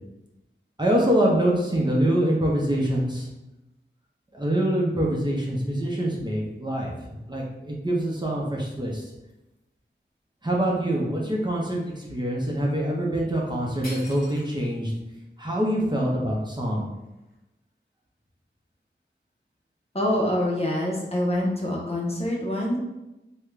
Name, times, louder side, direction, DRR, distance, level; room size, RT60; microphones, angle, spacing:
voice 1, 0.8-3.3 4.3-9.0 10.4-14.9 15.4-16.9, right 1 dB, 20° right, -3 dB, 0.7 m, -25 dB
sound 1, 13.4-13.5 13.8-14.8 15.4-15.5 16.0-17.4, left 1 dB, 45° left, 1.1 m, -44 dB
voice 2, 19.9-22.8, left 1 dB, 30° left, -3 dB, 0.7 m, -25 dB
3.6 x 2.2 x 3.2 m, 0.97 s
wide cardioid pair, 70°, 20 cm